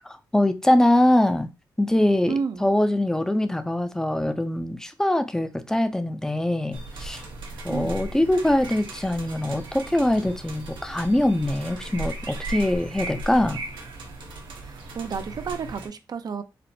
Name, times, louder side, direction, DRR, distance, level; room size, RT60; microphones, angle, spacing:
voice 1, 0.0-1.5 1.8-2.3 2.6-7.2 7.6-13.6, left 1 dB, 5° left, 0.4 m, -23 dB
voice 2, 2.3-2.7 7.7-8.0 14.6-16.4, right 5 dB, 55° right, 0.5 m, -31 dB
sound 1, 6.7-15.9, right 2 dB, 90° right, 0.9 m, -37 dB
4.2 x 2.1 x 2.6 m
cardioid pair, 80°, 8 cm